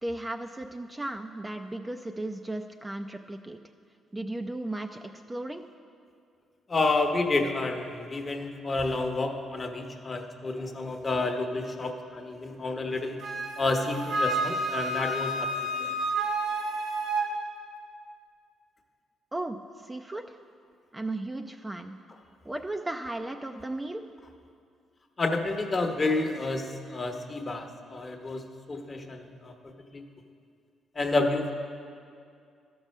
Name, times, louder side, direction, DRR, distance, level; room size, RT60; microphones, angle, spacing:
voice 1, 0.0-3.6 4.1-5.6 19.3-20.4 20.9-21.9 22.4-24.0, right 2 dB, 15° right, 5 dB, 0.4 m, -35 dB
voice 2, 6.7-13.2 13.6-15.5 15.8-15.9 25.2-28.4 28.7-29.5 29.9-30.0 30.9-31.5, left 2 dB, 30° left, 4 dB, 1.0 m, -29 dB
Wind instrument woodwind instrument, 13.2-17.3, right 2 dB, 75° right, 1.8 m, -30 dB
12.5 x 6.1 x 5.4 m, 2.3 s
cardioid pair, 90°, 0 cm